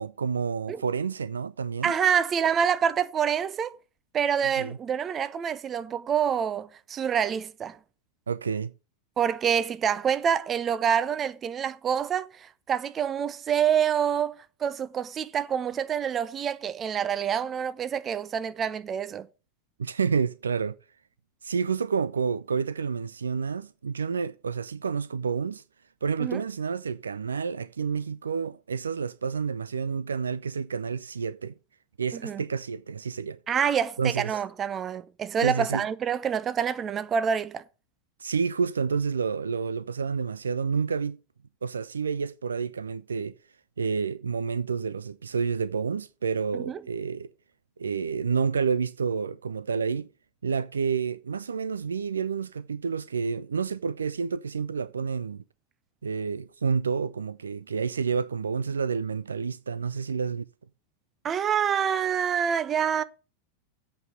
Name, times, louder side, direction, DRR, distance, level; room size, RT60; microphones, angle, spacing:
voice 1, 0.0-1.9 4.6-4.8 8.3-8.7 19.8-20.8 21.4-25.6 26.0-31.5 32.0-33.4 34.0-34.3 35.4-35.8 38.2-41.2 41.6-43.3 43.8-47.3 47.8-50.1 50.4-55.4 56.0-60.5, right 5 dB, 70° right, 0.4 m, -29 dB
voice 2, 1.8-3.8 4.1-7.8 9.2-19.3 26.2-26.4 32.1-32.4 33.5-37.6 46.7-46.8 61.2-63.0, right 8 dB, 25° right, 0.7 m, -27 dB
8.1 x 5.6 x 7.0 m
figure-of-eight pair, 90°, 0 cm